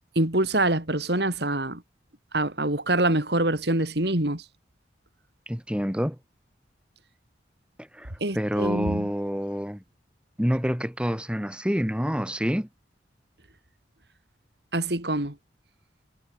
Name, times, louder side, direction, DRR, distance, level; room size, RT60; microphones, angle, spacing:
voice 1, 0.2-1.8 2.3-4.4 8.2-9.1 14.7-15.4, right 1 dB, 60° right, 3.7 m, -25 dB
voice 2, 5.5-6.2 7.8-9.8 10.4-12.7, equal, 5° right, 2.5 m, -27 dB
head